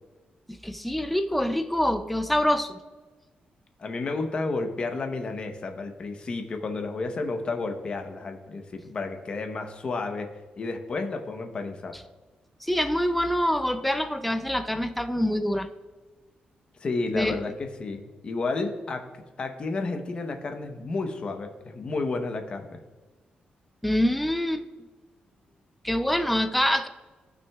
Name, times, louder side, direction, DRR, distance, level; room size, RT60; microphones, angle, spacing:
voice 1, 0.5-2.8 12.6-15.7 17.1-17.4 23.8-24.6 25.8-26.9, left 1 dB, ahead, 8 dB, 0.4 m, -25 dB
voice 2, 3.8-10.3 10.6-11.9 16.8-19.1 19.4-22.8, left 3 dB, 35° left, 5 dB, 0.8 m, -31 dB
15.0 x 6.1 x 2.3 m, 1.3 s
wide cardioid pair, 180°, 3 cm